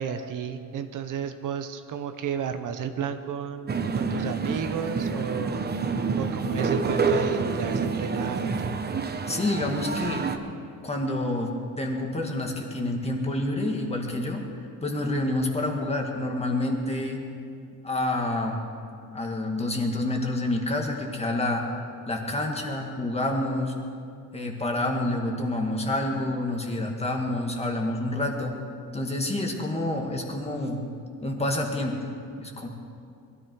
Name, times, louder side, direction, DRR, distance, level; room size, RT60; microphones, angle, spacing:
voice 1, 0.0-5.6 6.2-8.8, right 7 dB, 70° right, 8 dB, 1.0 m, -32 dB
sound 1, 3.7-10.4, right 4 dB, 30° right, 0.9 m, -28 dB
voice 2, 9.3-10.3 10.8-11.5 11.8-14.4 14.8-17.2 17.8-18.6 19.1-21.6 22.1-23.7 24.3-28.6 28.9-30.8 31.2-31.9 32.4-32.7, left 1 dB, 20° left, 0 dB, 2.0 m, -28 dB
22.0 x 14.0 x 4.7 m, 2.5 s
cardioid pair, 140°, 33 cm